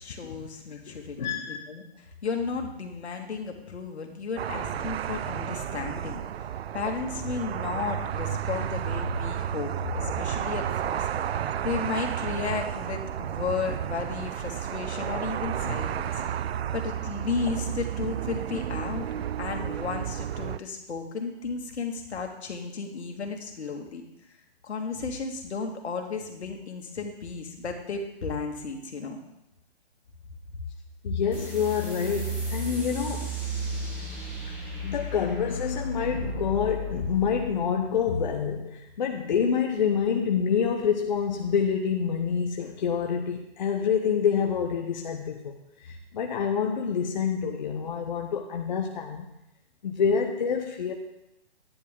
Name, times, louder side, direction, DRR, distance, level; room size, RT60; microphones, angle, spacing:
voice 1, 0.0-6.5 6.7-16.4 16.7-19.1 19.4-24.0 24.6-29.2, left 5 dB, 80° left, 3 dB, 2.2 m, -34 dB
voice 2, 0.9-1.6 31.0-33.3 34.8-45.5 45.8-49.3 49.8-50.9, left 7 dB, 45° left, 2 dB, 0.9 m, -27 dB
sound 1, 4.4-20.6, right 9 dB, 70° right, 0.5 m, -32 dB
sound 2, 31.3-38.4, right 1 dB, 5° right, 0.8 m, -34 dB
11.5 x 10.0 x 3.8 m, 0.86 s
hypercardioid pair, 170°, 33 cm